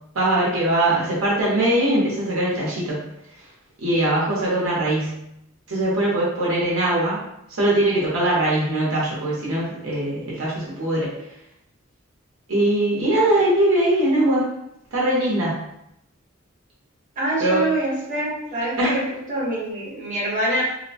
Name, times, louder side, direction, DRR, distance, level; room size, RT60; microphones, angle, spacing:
voice 1, 0.1-3.0 3.8-5.2 5.7-7.2 7.6-11.1 12.5-14.4 14.9-15.5 17.4-17.6 18.8-18.9, right 1 dB, 85° right, -6 dB, 0.8 m, -21 dB
voice 2, 17.2-19.0 19.3-20.6, right 1 dB, 40° right, -7 dB, 1.1 m, -25 dB
2.7 x 2.1 x 2.7 m, 0.82 s
head